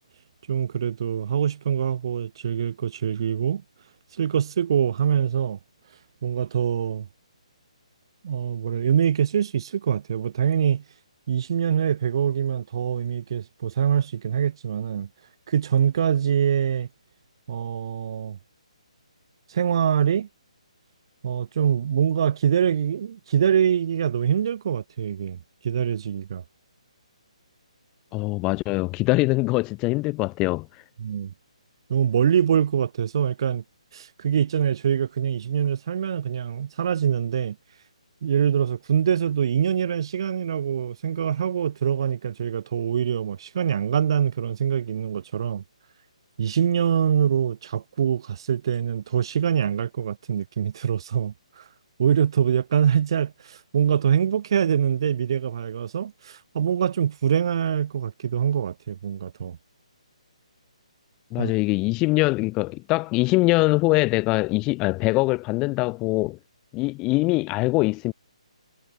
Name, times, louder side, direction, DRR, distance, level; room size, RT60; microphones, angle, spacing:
voice 1, 0.5-3.6 4.2-5.6 6.2-7.1 8.2-10.8 11.3-15.1 15.5-16.9 17.5-18.4 19.5-20.3 21.2-25.4 25.6-26.4 31.0-31.3 31.9-33.6 33.9-37.6 38.2-45.6 46.4-51.6 52.0-59.6 61.4-61.5, right 8 dB, 40° right, 2.1 m, -24 dB
voice 2, 28.1-30.7 61.3-66.4 66.7-68.1, left 23 dB, 15° left, 0.4 m, -23 dB
hypercardioid pair, 165°, 4 cm